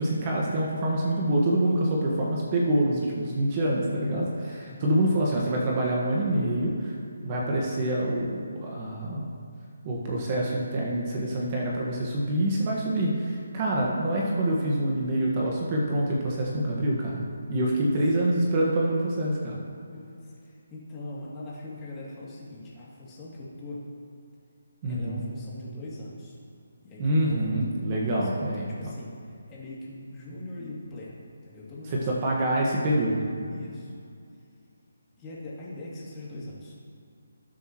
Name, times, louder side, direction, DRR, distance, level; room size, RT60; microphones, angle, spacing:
voice 1, 0.0-6.9 7.2-9.3 9.8-17.2 17.5-19.5 24.8-25.2 27.0-28.6 31.9-33.3, right 1 dB, 30° right, -3 dB, 1.5 m, -26 dB
voice 2, 4.6-5.0 17.7-17.9 19.9-23.8 24.9-26.4 26.8-27.5 27.9-32.4 33.5-33.9 35.2-36.7, left 2 dB, 15° left, -7 dB, 2.6 m, -41 dB
19.5 x 7.2 x 3.1 m, 2.3 s
hypercardioid pair, 160°, 0 cm